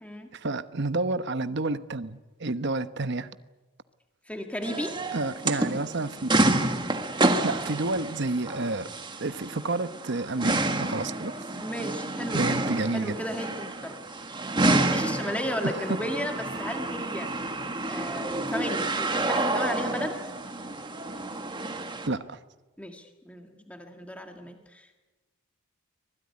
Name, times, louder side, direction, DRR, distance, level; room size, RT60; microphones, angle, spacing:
voice 1, 0.3-3.3 5.1-6.3 7.4-8.9 9.2-11.3 12.3-13.2 15.6-16.0 22.1-22.4, right 2 dB, 50° right, 12 dB, 1.0 m, -30 dB
voice 2, 4.3-5.0 11.6-12.7 12.9-14.0 14.6-17.3 17.8-20.2 22.8-25.0, equal, 5° left, 4 dB, 1.9 m, -34 dB
sound 1, 4.6-22.1, right 2 dB, 20° right, 1.7 m, -29 dB
25.0 x 20.5 x 9.8 m, 1.2 s
head